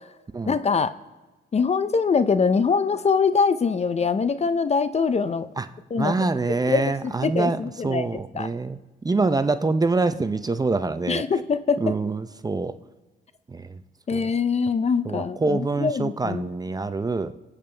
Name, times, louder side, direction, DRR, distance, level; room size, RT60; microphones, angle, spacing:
voice 1, 0.5-0.9 1.5-5.5 5.9-6.1 6.7-8.1 8.3-8.5 11.1-11.9 14.1-16.4, left 5 dB, 35° left, 13 dB, 0.6 m, -23 dB
voice 2, 6.0-11.2 11.8-12.7 13.5-13.8 14.1-14.3 15.0-17.3, right 3 dB, 20° right, 11 dB, 0.6 m, -25 dB
25.5 x 8.8 x 3.3 m, 1.1 s
cardioid pair, 90°, 20 cm